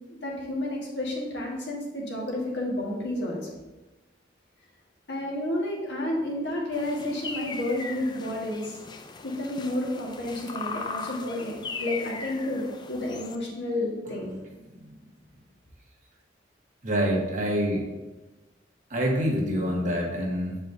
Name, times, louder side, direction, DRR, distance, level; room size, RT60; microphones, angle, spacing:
voice 1, 0.1-3.5 5.1-8.8 9.2-12.6 12.9-14.3, left 1 dB, 70° left, -3 dB, 1.6 m, -31 dB
sound 1, 6.7-13.4, left 4 dB, 25° left, 0.4 m, -38 dB
voice 2, 16.8-17.8 18.9-20.6, equal, 45° right, -1 dB, 1.2 m, -26 dB
7.7 x 4.7 x 2.7 m, 1.1 s
head